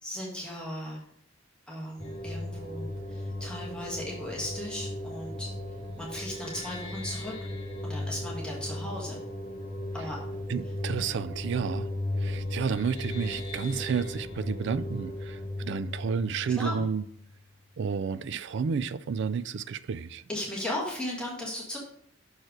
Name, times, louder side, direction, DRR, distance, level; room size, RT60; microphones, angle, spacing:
voice 1, 0.0-1.0 1.7-5.5 6.0-7.3 7.8-9.2 9.9-10.2 16.6-16.8 20.3-21.8, left 1 dB, 5° left, 1.5 m, -36 dB
sound 1, 2.0-17.5, left 1 dB, 30° left, 1.3 m, -36 dB
voice 2, 10.5-11.9 12.2-17.0 17.8-20.3, right 6 dB, 55° right, 0.3 m, -31 dB
6.5 x 4.5 x 4.7 m
head